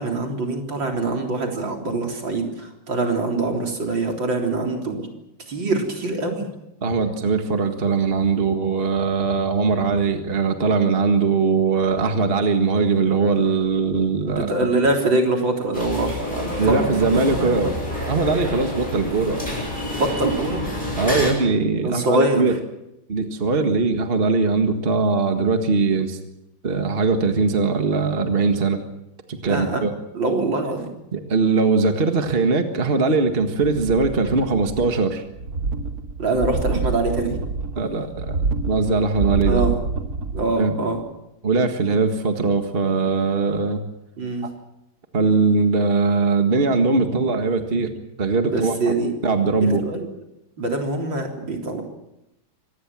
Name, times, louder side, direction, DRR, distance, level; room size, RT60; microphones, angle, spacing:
voice 1, 0.0-5.1 5.5-6.5 14.3-17.7 19.9-20.7 21.8-22.6 29.5-29.8 30.1-30.9 36.2-37.4 39.5-39.7 40.3-41.0 44.2-44.5 48.5-49.1 49.6-50.1 50.6-51.8, right 2 dB, 65° right, 2 dB, 4.4 m, -24 dB
voice 2, 6.8-14.5 16.6-17.8 18.1-19.5 21.0-22.5 23.1-26.2 26.6-28.8 29.3-29.9 31.1-35.2 37.7-38.4 38.7-39.6 40.6-40.8 41.4-43.8 45.1-47.9 48.2-48.7 49.2-49.9, right 4 dB, 30° right, 6 dB, 1.8 m, -20 dB
sound 1, 15.7-21.3, left 1 dB, 20° left, 7.4 m, -28 dB
sound 2, 33.6-35.1 35.3-40.6 41.0-41.1, right 3 dB, 50° right, 2.3 m, -27 dB
25.0 x 19.5 x 7.5 m, 0.87 s
omnidirectional pair, 2.2 m